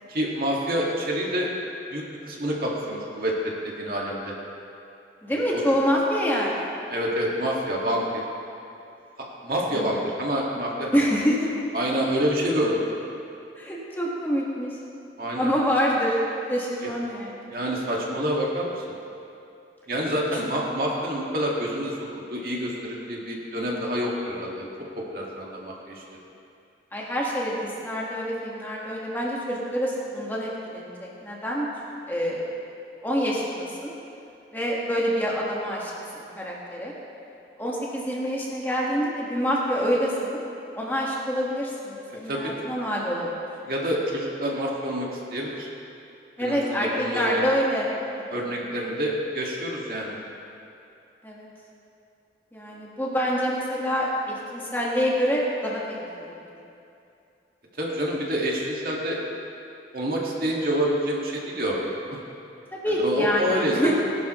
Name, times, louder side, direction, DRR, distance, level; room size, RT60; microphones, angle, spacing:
voice 1, 0.1-1.5 1.9-4.3 5.3-5.6 6.9-8.2 9.4-11.2 11.7-12.8 15.2-15.5 16.8-16.9 17.5-18.8 19.9-22.0 22.3-24.7 25.1-26.0 42.3-42.5 43.7-45.7 46.4-47.4 48.3-50.2 57.8-59.2 59.9-61.8 62.1-62.2 63.0-63.9, equal, 55° right, -3 dB, 2.0 m, -27 dB
voice 2, 5.2-6.7 9.7-9.9 10.9-11.5 13.6-14.7 15.4-16.2 16.5-17.4 20.3-20.4 26.9-31.7 32.1-32.5 33.0-33.9 34.5-36.9 37.6-40.4 40.7-43.3 46.4-47.9 48.1-48.2 51.2-51.5 52.5-56.3 62.7-63.9, equal, 10° left, -5 dB, 1.6 m, -26 dB
19.5 x 11.5 x 3.1 m, 2.7 s
head